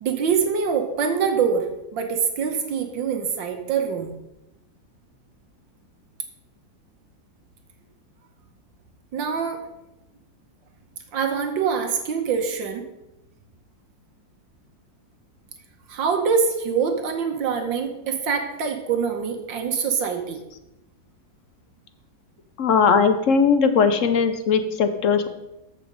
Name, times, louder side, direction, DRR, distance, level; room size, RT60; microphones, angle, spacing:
voice 1, 0.0-1.7 1.9-4.1 9.1-9.6 11.1-12.8 15.9-20.4, right 6 dB, 75° right, 5 dB, 1.7 m, -24 dB
voice 2, 22.6-25.3, left 5 dB, 55° left, 8 dB, 0.9 m, -19 dB
14.0 x 5.1 x 5.2 m, 0.91 s
omnidirectional pair, 2.1 m